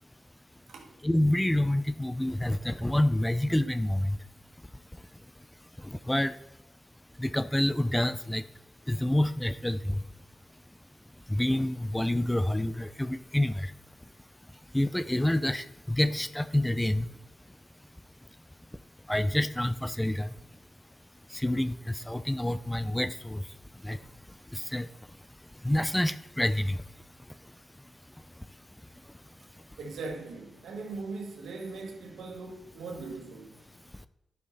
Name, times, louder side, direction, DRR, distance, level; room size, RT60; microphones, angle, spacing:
voice 1, 1.0-4.2 5.8-6.3 7.2-8.4 8.9-10.0 11.3-13.7 14.7-17.1 19.1-20.3 21.3-23.4 23.8-24.0 24.5-24.9 25.6-26.8, left 1 dB, 10° left, 0.5 m, -27 dB
voice 2, 29.8-33.6, right 3 dB, 85° right, 1.6 m, -40 dB
11.5 x 5.8 x 4.1 m
cardioid pair, 75°, 0 cm